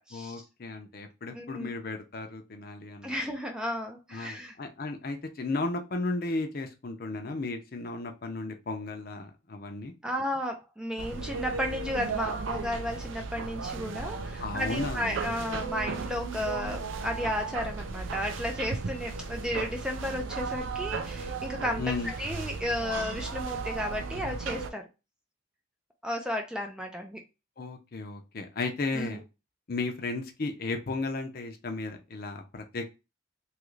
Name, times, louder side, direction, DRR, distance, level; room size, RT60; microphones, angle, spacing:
voice 1, 0.1-3.2 4.1-9.9 14.4-15.1 21.8-22.1 27.6-29.2 29.7-32.9, left 3 dB, 50° left, 5 dB, 0.6 m, -34 dB
voice 2, 1.3-1.7 3.0-4.5 10.0-24.9 26.0-27.2 28.9-29.2, left 1 dB, 5° right, 3 dB, 0.3 m, -33 dB
sound 1, 11.0-24.7, right 4 dB, 75° right, 0.4 m, -35 dB
3.0 x 2.4 x 3.1 m, 0.27 s
head